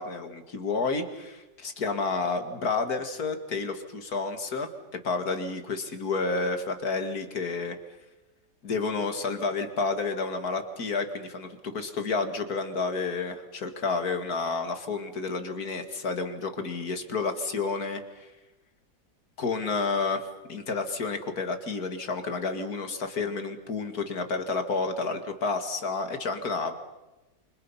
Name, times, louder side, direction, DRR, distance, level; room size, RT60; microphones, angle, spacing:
voice 1, 0.0-1.4 1.8-7.8 8.6-18.3 19.4-26.7, left 4 dB, 50° left, 7 dB, 2.5 m, -30 dB
28.0 x 26.0 x 5.7 m, 1.0 s
omnidirectional pair, 2.0 m